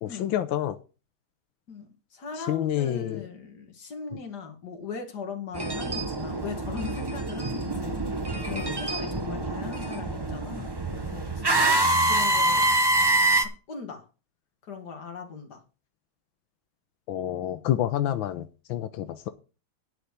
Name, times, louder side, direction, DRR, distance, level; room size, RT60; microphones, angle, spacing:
voice 1, 0.0-0.8 2.3-3.3 8.5-8.7 17.1-19.3, left 12 dB, 90° left, 1.5 m, -28 dB
voice 2, 1.7-8.0 8.5-11.4 12.1-12.7 13.4-14.1 14.6-15.6 17.4-17.6, left 5 dB, 55° left, 2.4 m, -39 dB
sound 1, 5.5-13.4, right 2 dB, 25° right, 0.6 m, -26 dB
10.5 x 5.0 x 8.2 m
omnidirectional pair, 2.1 m